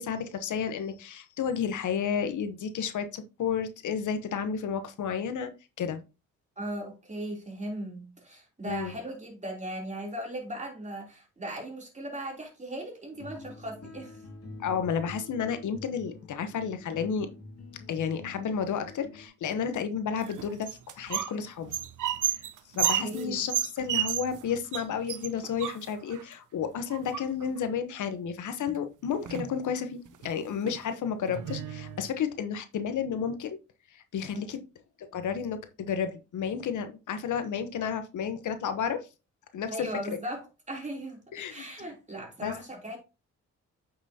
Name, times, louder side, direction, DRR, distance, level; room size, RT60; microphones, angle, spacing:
voice 1, 0.0-5.5 5.8-6.0 8.6-8.9 14.6-17.3 17.9-21.8 22.2-22.4 22.7-33.6 33.9-34.6 35.0-39.1 39.5-40.2 41.3-41.7 42.4-42.5, left 7 dB, 80° left, 1.0 m, -32 dB
voice 2, 6.6-14.2 23.0-23.5 34.3-34.5 39.7-41.2 41.5-43.0, right 1 dB, 25° right, 3.2 m, -38 dB
sound 1, 13.1-19.3, left 3 dB, 55° left, 2.6 m, -47 dB
sound 2, 20.2-21.4 21.6-24.4 24.7-24.8 25.1-26.2 26.9-27.6 28.7-28.8 29.1-29.6 30.1-30.3 30.7-30.8 31.3-32.1, right 11 dB, 80° right, 0.8 m, -31 dB
8.5 x 6.0 x 2.8 m
cardioid pair, 90°, 30 cm